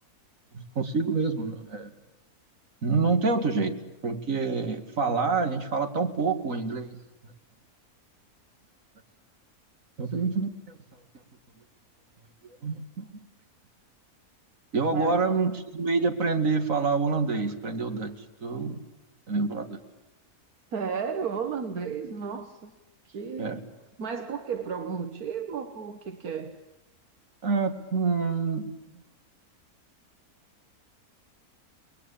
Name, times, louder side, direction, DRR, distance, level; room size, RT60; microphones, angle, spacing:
voice 1, 0.5-1.9 2.8-7.3 10.0-10.8 12.6-13.1 14.7-18.8 19.3-19.8 23.4-23.6 27.4-28.8, right 4 dB, 60° right, 2.5 m, -27 dB
voice 2, 20.7-22.7 23.1-23.6 24.0-26.6, right 6 dB, 75° right, 1.8 m, -33 dB
29.5 x 21.5 x 8.6 m
omnidirectional pair, 1.6 m